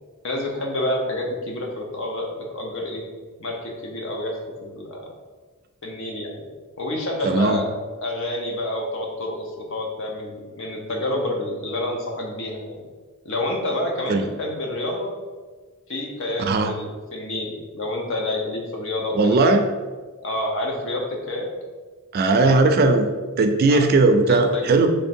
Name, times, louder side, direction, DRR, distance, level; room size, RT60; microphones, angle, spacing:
voice 1, 0.2-3.0 3.4-5.1 5.8-6.4 6.8-12.8 13.2-15.1 15.9-19.4 20.2-21.5 23.7-23.8 24.3-24.9, left 1 dB, 60° left, 1 dB, 0.8 m, -28 dB
voice 2, 7.2-7.6 14.1-14.2 16.4-16.7 19.2-19.6 22.1-23.1 23.4-24.9, right 3 dB, 45° right, 6 dB, 0.4 m, -18 dB
3.6 x 3.2 x 4.3 m, 1.4 s
head